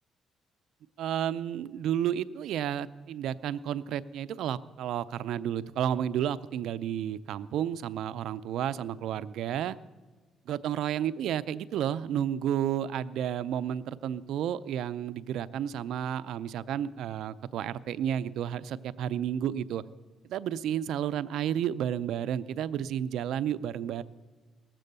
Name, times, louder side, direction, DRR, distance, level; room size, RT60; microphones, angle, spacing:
voice 1, 1.0-9.8 10.5-19.8 20.3-24.0, right 10 dB, 80° right, 15 dB, 0.4 m, -31 dB
18.5 x 7.6 x 6.7 m, 1.3 s
cardioid pair, 90°, 0 cm